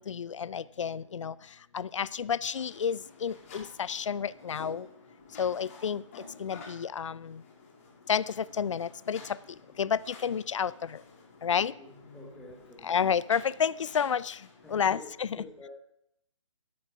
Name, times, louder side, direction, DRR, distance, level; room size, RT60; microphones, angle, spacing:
voice 1, 0.0-1.3 1.7-4.9 5.4-6.0 6.4-7.4 8.1-9.2 9.8-10.7 11.4-11.7 12.8-14.4 14.7-15.3, left 7 dB, 70° left, 19 dB, 0.5 m, -30 dB
sound 1, 2.4-15.1, left 4 dB, 25° left, 2.6 m, -52 dB
voice 2, 12.1-12.9 14.6-15.0 15.4-15.7, left 2 dB, ahead, -2 dB, 1.0 m, -48 dB
13.0 x 8.3 x 5.8 m, 0.77 s
hypercardioid pair, 170°, 16 cm